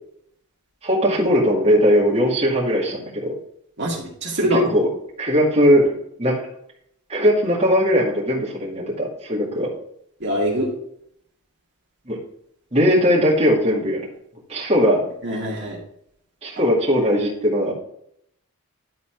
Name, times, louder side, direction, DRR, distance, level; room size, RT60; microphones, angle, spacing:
voice 1, 0.8-3.3 4.5-4.9 5.2-5.9 6.2-6.4 7.1-9.7 12.1-12.2 12.7-14.0 14.5-15.0 16.4-17.7, equal, 30° right, -5 dB, 2.2 m, -19 dB
voice 2, 3.8-4.6 10.2-10.7 15.2-15.8, right 1 dB, 55° right, -3 dB, 2.1 m, -23 dB
11.0 x 4.2 x 4.6 m, 0.72 s
head